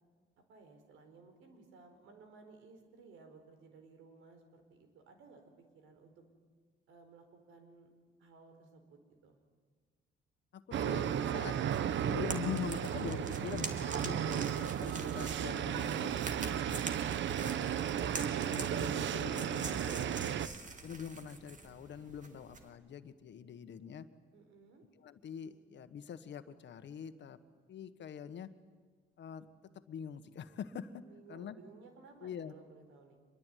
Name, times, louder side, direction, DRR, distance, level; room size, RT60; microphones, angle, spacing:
voice 1, 0.5-6.2 6.9-7.9 8.2-9.4 24.3-24.8 31.0-33.2, right 4 dB, 90° right, 6 dB, 4.6 m, -58 dB
voice 2, 10.5-11.6 12.0-16.7 17.3-17.7 18.0-20.4 20.8-24.1 25.0-27.4 27.7-28.5 29.2-29.5 29.9-31.0 31.3-31.5 32.2-32.5, left 8 dB, 65° left, 10 dB, 1.6 m, -44 dB
sound 1, 10.7-20.5, right 9 dB, 70° right, 1.1 m, -34 dB
sound 2, 11.7-22.7, right 3 dB, 40° right, 2.8 m, -46 dB
25.5 x 22.0 x 9.4 m, 1.5 s
cardioid pair, 90°, 20 cm